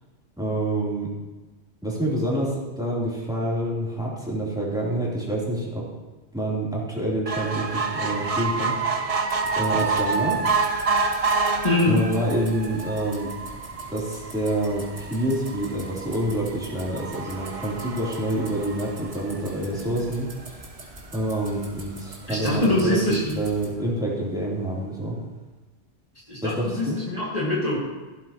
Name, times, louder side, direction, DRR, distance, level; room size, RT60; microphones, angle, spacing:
voice 1, 0.4-1.1 1.8-5.9 6.3-8.7 9.6-10.4 11.9-13.3 13.9-20.3 21.1-23.0 23.3-25.2 26.4-27.0, right 1 dB, 5° right, -6 dB, 3.4 m, -27 dB
sound 1, 7.3-19.9 20.4-20.5 20.8-20.9 21.2-21.3, right 4 dB, 35° right, 0.8 m, -28 dB
sound 2, 9.3-23.7, right 2 dB, 70° right, 2.2 m, -44 dB
voice 2, 11.6-12.1 22.3-23.4 26.3-27.8, left 1 dB, 35° left, -6 dB, 2.1 m, -23 dB
16.0 x 11.5 x 3.1 m, 1.2 s
omnidirectional pair, 1.2 m